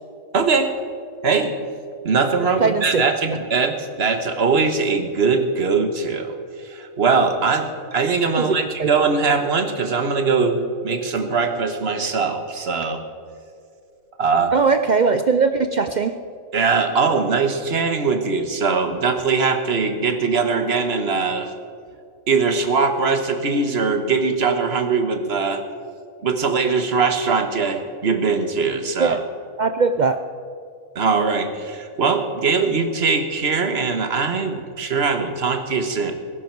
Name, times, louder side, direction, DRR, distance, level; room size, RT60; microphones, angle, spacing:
voice 1, 0.3-0.7 1.2-1.5 2.0-6.3 6.6-13.0 14.2-14.5 16.5-21.5 22.3-25.6 26.2-29.2 30.9-36.1, right 4 dB, 50° right, 6 dB, 1.4 m, -21 dB
voice 2, 2.6-3.1 8.4-8.9 14.5-16.2 29.0-29.2 29.6-30.2, right 4 dB, 70° right, 8 dB, 0.4 m, -20 dB
20.5 x 11.0 x 4.6 m, 2.4 s
omnidirectional pair, 1.4 m